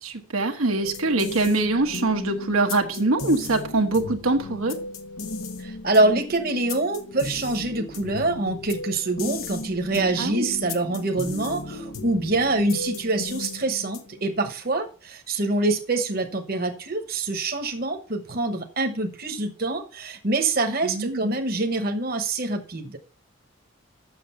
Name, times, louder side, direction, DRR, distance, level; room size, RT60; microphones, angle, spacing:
voice 1, 0.0-4.8 10.2-10.5 20.8-21.3, right 2 dB, 90° right, 1.3 m, -23 dB
sound 1, 0.8-14.3, left 3 dB, 80° left, 1.1 m, -36 dB
voice 2, 5.6-23.0, right 2 dB, 45° right, 1.1 m, -25 dB
7.5 x 6.5 x 5.6 m
head